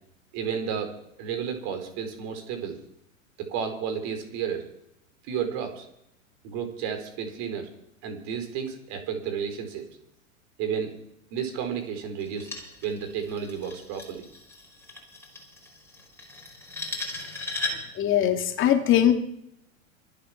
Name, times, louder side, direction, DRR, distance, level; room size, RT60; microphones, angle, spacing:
voice 1, 0.3-2.8 3.4-4.6 5.3-5.9 6.4-7.7 8.0-9.8 10.6-10.9 11.3-12.5 12.8-14.3, right 7 dB, 40° right, 6 dB, 4.6 m, -32 dB
sound 1, 12.2-18.0, left 2 dB, 5° left, 4.8 m, -37 dB
voice 2, 18.0-19.1, left 11 dB, 30° left, 5 dB, 2.5 m, -21 dB
24.5 x 8.5 x 6.0 m, 0.76 s
hypercardioid pair, 105°, 41 cm